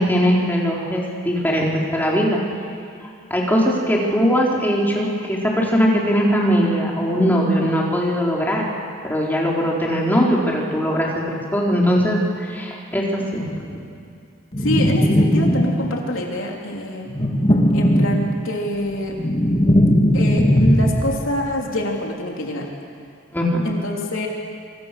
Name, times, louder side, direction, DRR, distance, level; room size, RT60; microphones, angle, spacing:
voice 1, 0.0-2.4 3.0-8.7 9.0-13.9 23.3-23.6, equal, 10° left, -3 dB, 3.9 m, -20 dB
sound 1, 14.5-16.1 17.1-18.6 18.9-21.3, equal, 25° left, 2.1 m, -18 dB
voice 2, 14.6-17.1 17.7-19.2 20.1-22.7 23.6-24.3, left 1 dB, 70° left, -1 dB, 3.5 m, -25 dB
25.5 x 25.5 x 6.9 m, 2.4 s
head